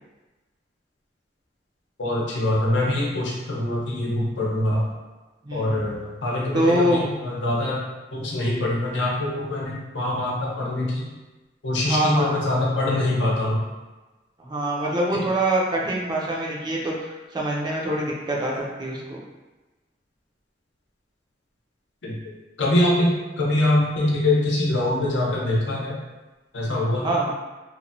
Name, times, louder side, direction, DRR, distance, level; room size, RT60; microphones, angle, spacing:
voice 1, 2.0-4.8 5.5-7.8 8.1-11.1 11.6-13.6 15.1-15.2 22.0-22.2 22.6-26.0 26.5-27.1, left 1 dB, 80° left, -4 dB, 0.7 m, -24 dB
voice 2, 5.4-5.8 6.5-7.1 11.8-12.3 14.4-19.2 27.0-27.3, right 1 dB, 25° right, -3 dB, 0.4 m, -24 dB
2.9 x 2.2 x 2.6 m, 1.1 s
head